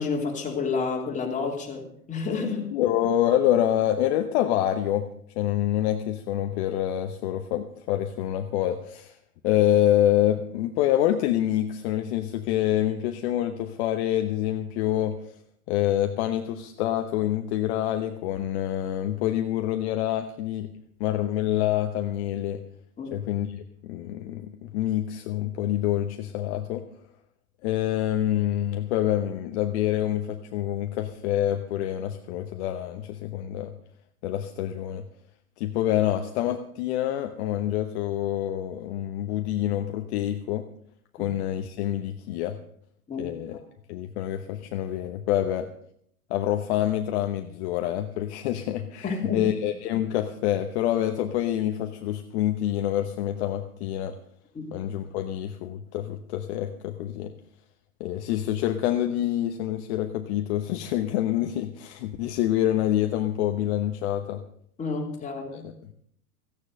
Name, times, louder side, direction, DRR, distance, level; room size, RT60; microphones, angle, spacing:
voice 1, 0.0-2.7 23.0-23.1 41.2-41.3 43.1-43.6 49.0-49.5 54.5-54.7 64.8-65.7, left 4 dB, 15° left, 0 dB, 3.3 m, -30 dB
voice 2, 2.7-5.1 5.4-9.2 9.4-15.2 15.7-20.7 21.0-22.6 23.1-26.8 27.6-33.7 34.2-35.0 35.6-40.6 41.1-42.6 43.2-43.6 43.9-45.7 46.3-54.1 54.7-57.3 58.0-64.4 65.5-65.9, left 12 dB, 45° left, 6 dB, 1.1 m, -26 dB
15.0 x 9.6 x 6.6 m, 0.68 s
hypercardioid pair, 115°, 44 cm